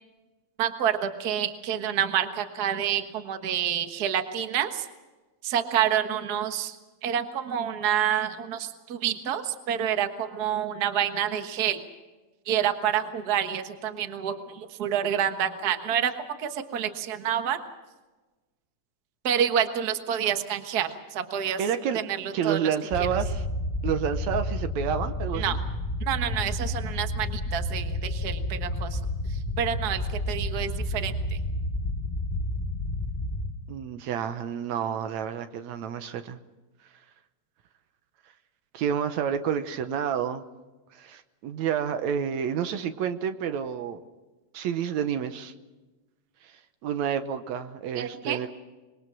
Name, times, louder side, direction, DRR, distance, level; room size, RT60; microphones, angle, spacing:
voice 1, 0.6-4.9 5.4-6.7 7.0-11.8 12.5-16.1 16.4-17.6 19.2-21.6 21.9-22.7 23.0-23.1 25.3-25.6 26.0-29.0 29.3-31.1 48.0-48.4, right 9 dB, 45° right, 7 dB, 1.5 m, -28 dB
voice 2, 21.6-22.0 22.3-23.5 23.8-25.6 33.7-36.4 38.7-40.5 40.9-44.0 44.5-45.5 46.4-46.5 46.8-48.5, right 8 dB, 75° right, 9 dB, 2.2 m, -29 dB
sound 1, 22.9-33.5, left 1 dB, 20° left, 2.3 m, -30 dB
26.0 x 21.5 x 6.1 m, 1.2 s
omnidirectional pair, 3.3 m